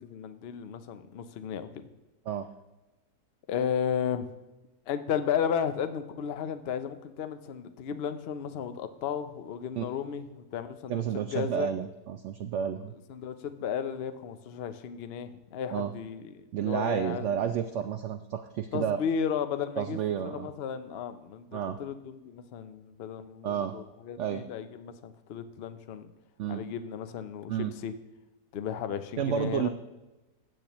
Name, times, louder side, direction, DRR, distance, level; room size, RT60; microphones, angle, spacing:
voice 1, 0.0-1.7 3.5-4.3 4.9-11.7 13.1-17.3 18.7-26.1 26.5-27.9 28.5-29.7, left 8 dB, 60° left, 10 dB, 0.6 m, -34 dB
voice 2, 10.9-12.9 15.7-15.9 16.5-19.0 19.8-20.5 21.5-21.8 23.4-23.7 24.2-24.4 26.4-26.6 27.5-27.7 29.2-29.7, right 9 dB, 70° right, 8 dB, 0.7 m, -31 dB
15.5 x 8.5 x 3.0 m, 1.1 s
omnidirectional pair, 1.7 m